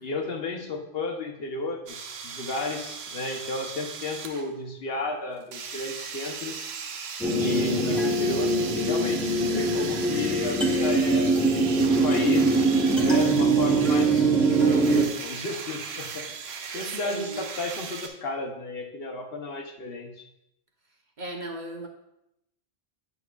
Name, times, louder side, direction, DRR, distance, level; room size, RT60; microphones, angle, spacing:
voice 1, 0.0-6.7 7.3-11.4 11.9-12.7 13.0-16.2 16.7-20.3, left 3 dB, 70° left, 2 dB, 1.1 m, -33 dB
sound 1, 1.9-4.5 5.5-18.1, right 6 dB, 90° right, 0.9 m, -37 dB
sound 2, 7.2-15.1, right 3 dB, ahead, 0.7 m, -22 dB
voice 2, 17.0-17.5 21.2-21.9, right 1 dB, 50° right, 1 dB, 1.0 m, -36 dB
9.5 x 6.0 x 2.3 m, 0.82 s
omnidirectional pair, 1.0 m